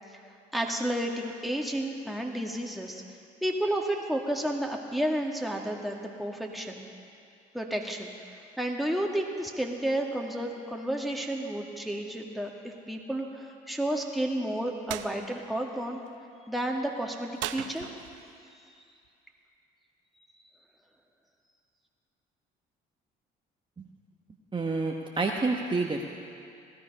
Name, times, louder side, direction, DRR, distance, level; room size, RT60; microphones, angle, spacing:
voice 1, 0.5-3.0 3.4-6.9 7.5-8.1 8.6-16.0 16.5-17.9 20.2-20.3, right 1 dB, ahead, 0 dB, 2.0 m, -31 dB
sound 1, 14.9-15.1 17.4-18.3, right 12 dB, 80° right, 0.6 m, -36 dB
voice 2, 24.5-26.0, right 3 dB, 25° right, 0 dB, 1.2 m, -28 dB
17.0 x 12.5 x 5.4 m, 2.5 s
supercardioid pair, 65°, 19 cm